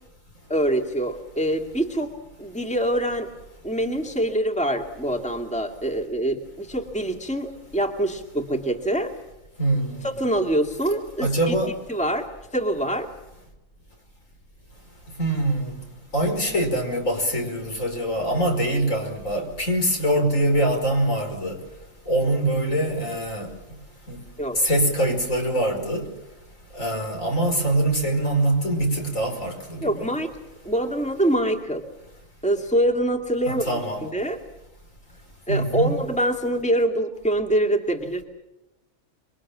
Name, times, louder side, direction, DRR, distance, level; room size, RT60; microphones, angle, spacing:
voice 1, 0.5-2.1 2.4-3.3 3.6-9.1 10.0-11.5 11.9-12.3 12.5-13.1 24.4-24.6 29.8-30.3 30.6-31.8 32.4-33.7 34.0-34.4 35.5-38.2, right 1 dB, 5° left, 3 dB, 2.1 m, -24 dB
voice 2, 9.6-10.0 11.2-11.7 15.2-15.7 16.1-21.6 22.1-23.5 24.1-24.2 24.5-26.1 26.7-30.1 33.5-34.1 35.5-35.9, right 1 dB, 70° left, 3 dB, 5.7 m, -23 dB
27.0 x 23.5 x 7.4 m, 0.95 s
omnidirectional pair, 1.4 m